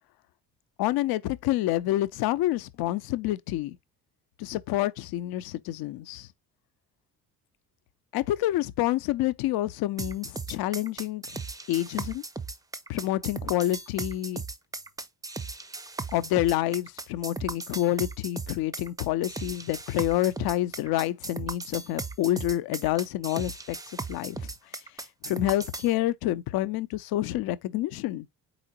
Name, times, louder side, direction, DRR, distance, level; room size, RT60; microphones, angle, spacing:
voice 1, 0.8-3.8 4.4-6.3 8.1-11.2 11.7-12.2 12.9-14.4 16.1-23.8 24.1-24.4 25.3-28.3, left 14 dB, 50° left, 0.5 m, -28 dB
sound 1, 10.0-25.9, right 3 dB, 10° right, 0.4 m, -37 dB
4.2 x 3.8 x 2.8 m
hypercardioid pair, 50°, 47 cm